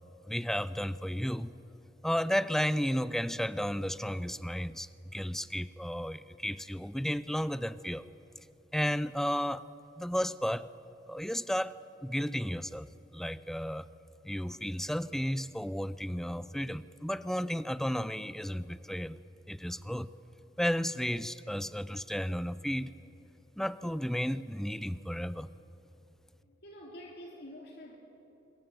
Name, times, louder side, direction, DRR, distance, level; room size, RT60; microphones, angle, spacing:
voice 1, 0.3-1.6 2.0-8.1 8.7-9.7 10.0-10.7 11.1-11.8 12.0-13.9 14.2-19.2 19.5-20.1 20.6-22.9 23.6-25.5, equal, ahead, 15 dB, 0.6 m, -33 dB
voice 2, 26.4-28.0, equal, 60° left, 0 dB, 3.0 m, -47 dB
25.0 x 21.5 x 9.1 m, 2.9 s
head